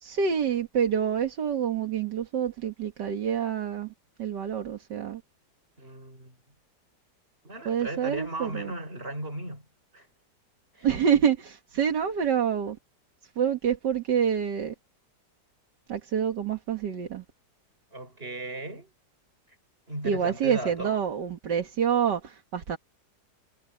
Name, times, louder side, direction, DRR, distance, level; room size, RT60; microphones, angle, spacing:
voice 1, 0.0-3.9 4.2-5.2 7.7-8.7 10.8-12.8 13.4-14.7 15.9-17.2 20.0-22.8, right 8 dB, 80° right, 2.2 m, -27 dB
voice 2, 5.8-6.4 7.4-9.6 9.9-10.1 10.7-10.9 17.9-18.9 19.9-21.0, right 1 dB, 35° right, 6.7 m, -36 dB
omnidirectional pair, 1.8 m